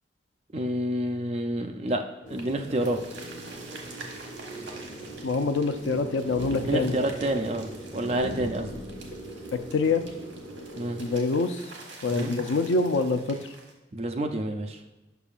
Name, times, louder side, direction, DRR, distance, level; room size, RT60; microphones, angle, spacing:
voice 1, 0.5-2.0 2.3-3.0 6.7-8.7 10.8-11.0 12.1-12.4 13.9-14.8, right 1 dB, 35° right, 5 dB, 0.5 m, -28 dB
sound 1, 2.2-11.1, right 1 dB, 65° left, 1.9 m, -40 dB
sound 2, 2.3-13.7, right 3 dB, 65° right, 1.3 m, -47 dB
voice 2, 5.2-6.9 9.7-10.0 11.0-11.7 12.0-13.4, left 3 dB, 80° left, 8 dB, 0.5 m, -25 dB
6.8 x 6.0 x 2.5 m, 1.1 s
head